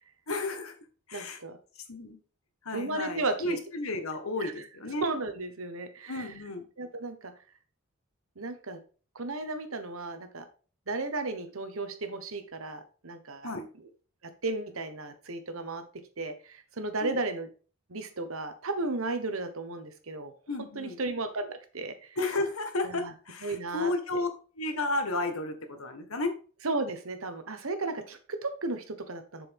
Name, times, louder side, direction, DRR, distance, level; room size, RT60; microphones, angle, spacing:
voice 1, 0.3-0.8 1.1-1.4 1.9-2.2 2.6-5.1 6.1-6.7 13.4-13.7 17.0-17.2 20.5-21.0 22.1-24.3 24.5-26.3, left 2 dB, 80° left, 6 dB, 1.6 m, -33 dB
voice 2, 1.1-1.6 2.7-3.6 4.4-4.5 5.0-6.3 6.8-7.3 8.4-8.8 9.1-10.4 10.9-13.5 14.4-15.8 16.2-17.5 17.9-20.3 20.7-22.2 22.8-22.9 23.4-23.9 26.6-29.5, right 2 dB, 75° right, 8 dB, 1.3 m, -34 dB
7.1 x 6.9 x 3.6 m, 0.37 s
head